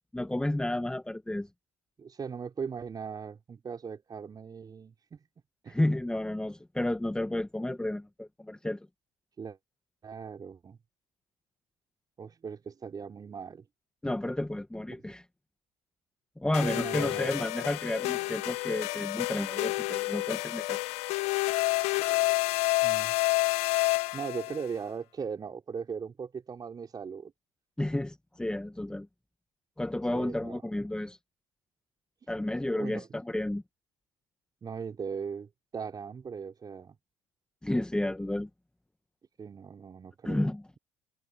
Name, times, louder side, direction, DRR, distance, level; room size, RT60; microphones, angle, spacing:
voice 1, 0.1-1.5 5.7-8.8 14.0-15.2 16.4-20.8 27.8-29.1 29.8-31.2 32.3-33.6 37.6-38.5 40.2-40.6, left 1 dB, 5° left, 1.7 m, -31 dB
voice 2, 2.0-5.2 5.6-5.8 9.4-9.6 10.0-10.8 12.2-13.6 14.9-15.0 16.6-17.3 22.8-23.1 24.1-27.3 30.1-30.6 32.7-33.1 34.6-36.9 39.4-40.5, right 6 dB, 35° right, 4.1 m, -39 dB
sound 1, 16.5-24.6, left 20 dB, 65° left, 1.1 m, -29 dB
hypercardioid pair, 60°, 12 cm